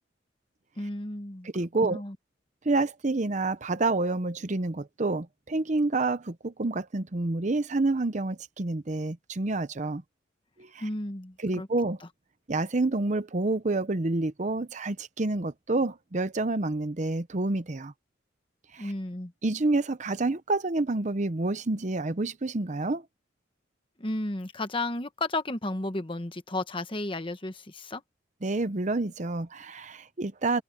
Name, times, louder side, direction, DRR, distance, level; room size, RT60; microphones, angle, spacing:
voice 1, 0.8-1.5 1.8-2.1 10.8-11.7 18.8-19.3 24.0-28.0, left 2 dB, 25° left, 1.2 m, -33 dB
voice 2, 1.4-2.0 2.6-10.0 10.6-10.9 11.4-12.0 12.5-17.9 18.7-18.9 19.4-23.0 28.4-30.6, right 2 dB, 40° right, 0.8 m, -28 dB
head